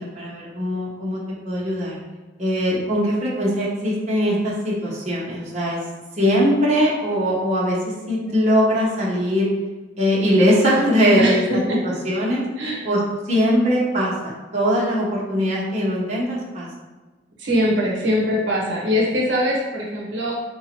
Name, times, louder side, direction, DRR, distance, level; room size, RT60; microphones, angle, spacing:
voice 1, 0.1-2.0 2.4-5.8 6.2-9.5 10.0-12.4 12.8-13.0 13.3-16.7, equal, 35° right, -6 dB, 1.0 m, -21 dB
voice 2, 11.2-11.8 12.6-12.9 17.4-20.3, equal, 70° right, -4 dB, 0.9 m, -22 dB
3.9 x 2.8 x 4.4 m, 1.2 s
head